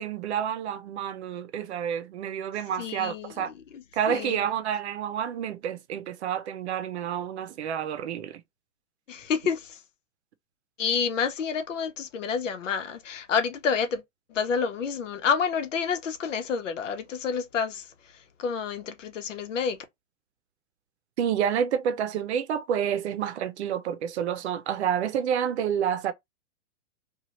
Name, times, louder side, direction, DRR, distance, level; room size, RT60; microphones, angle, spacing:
voice 1, 0.0-3.5 3.9-8.4 21.2-26.1, right 8 dB, 65° right, 0.6 m, -29 dB
voice 2, 2.8-4.4 9.1-9.8 10.8-14.0 14.3-17.8 18.4-19.8, left 6 dB, 90° left, 0.9 m, -29 dB
2.8 x 2.4 x 3.0 m
hypercardioid pair, 160°, 36 cm